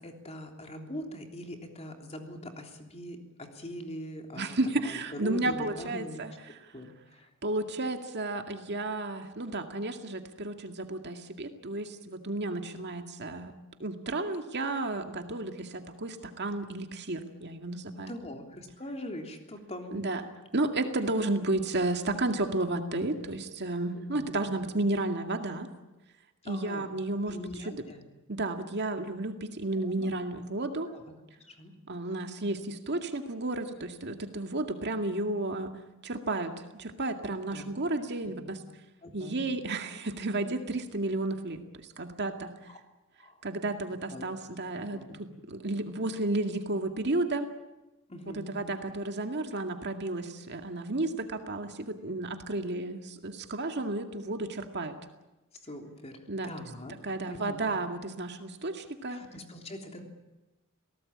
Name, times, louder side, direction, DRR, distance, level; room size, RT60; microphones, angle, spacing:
voice 1, 0.0-6.4 6.7-7.3 18.1-20.1 23.9-24.4 26.4-26.9 27.2-28.1 29.8-30.1 30.9-31.0 31.4-31.7 37.5-37.7 38.2-38.5 39.0-39.5 42.7-42.8 43.2-43.4 44.1-44.2 44.9-45.2 48.1-48.5 55.6-57.0 57.3-57.7 59.1-60.0, left 1 dB, 30° left, 3 dB, 3.3 m, -42 dB
voice 2, 4.4-6.3 7.4-18.1 19.9-20.2 20.5-25.7 26.5-27.7 28.3-30.9 31.9-35.7 36.0-38.6 39.1-41.6 42.0-42.5 43.4-47.5 48.3-54.9 56.3-56.5 57.0-59.2, right 2 dB, 50° right, 5 dB, 2.1 m, -32 dB
27.5 x 18.5 x 8.8 m, 1.1 s
head